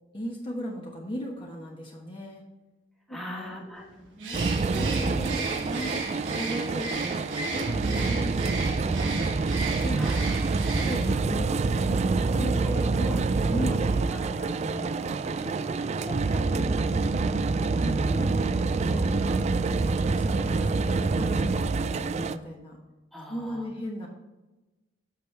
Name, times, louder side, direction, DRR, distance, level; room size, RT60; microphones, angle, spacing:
voice 1, 0.1-2.4 3.1-3.7 4.8-10.0 10.8-11.9 12.3-13.2 13.5-15.1 17.6-17.7 18.1-19.6 19.9-22.8 23.3-24.1, equal, 25° left, -2 dB, 1.2 m, -37 dB
voice 2, 3.1-5.5 9.9-11.2 12.6-12.7 13.0-13.2 15.4-16.7 17.7-18.4 23.1-23.7, equal, ahead, -3 dB, 1.6 m, -40 dB
Bird, 4.2-11.3, right 3 dB, 70° right, 1.5 m, -36 dB
sound 1, 4.3-22.4, right 3 dB, 35° right, 0.3 m, -26 dB
8.2 x 6.4 x 3.4 m, 1.1 s
head